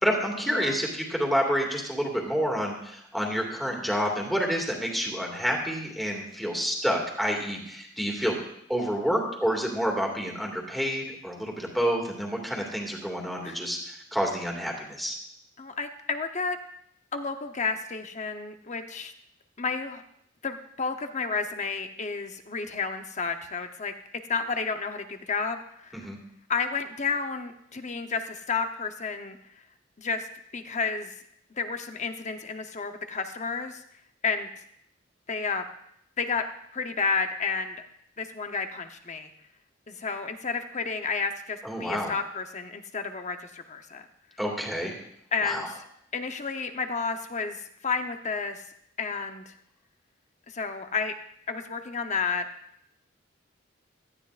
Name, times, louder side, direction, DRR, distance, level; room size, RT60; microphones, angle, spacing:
voice 1, 0.0-8.4 8.7-15.2 25.9-26.2 41.6-42.1 44.4-45.0 45.4-45.7, equal, ahead, -1 dB, 2.2 m, -28 dB
voice 2, 15.6-16.6 17.1-19.1 19.6-20.0 20.4-23.9 24.3-26.1 26.5-29.4 30.0-30.3 30.5-31.2 31.6-33.8 34.2-34.5 35.3-35.6 36.2-36.4 36.7-37.8 38.2-39.3 39.9-44.0 45.3-45.8 46.1-48.6 49.0-49.5 50.5-51.1 51.5-52.4, left 5 dB, 40° left, 7 dB, 0.9 m, -31 dB
17.5 x 12.5 x 2.5 m, 0.74 s
head